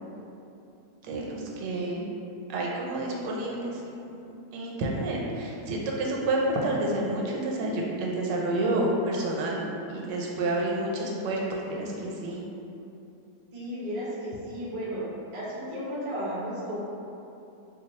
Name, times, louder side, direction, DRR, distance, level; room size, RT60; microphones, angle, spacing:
voice 1, 1.0-2.1 2.5-12.4, right 1 dB, 85° right, -2 dB, 1.3 m, -29 dB
voice 2, 13.5-15.1 15.3-16.8, equal, 60° right, -8 dB, 0.3 m, -34 dB
2.8 x 2.2 x 4.1 m, 2.8 s
omnidirectional pair, 1.9 m